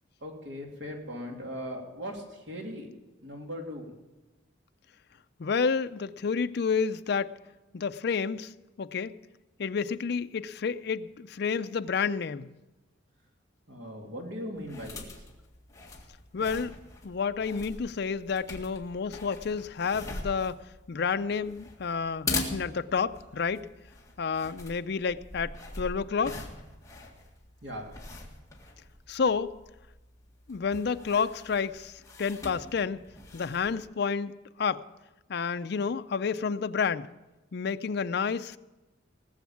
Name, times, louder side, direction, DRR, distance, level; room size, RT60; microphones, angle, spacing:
voice 1, 0.2-2.9 3.2-3.9 13.7-15.0 27.6-27.9, equal, 70° right, 2.8 m, -39 dB
voice 2, 5.4-7.3 7.7-8.5 8.8-9.2 9.6-12.5 16.3-16.8 17.0-20.6 20.9-23.7 24.2-26.5 29.1-29.5 30.5-33.0 33.3-34.3 34.6-34.8 35.3-37.1 37.5-38.6, left 5 dB, 60° left, 0.5 m, -30 dB
sound 1, 14.6-33.9, left 3 dB, 15° left, 1.8 m, -42 dB
19.0 x 7.1 x 7.1 m
head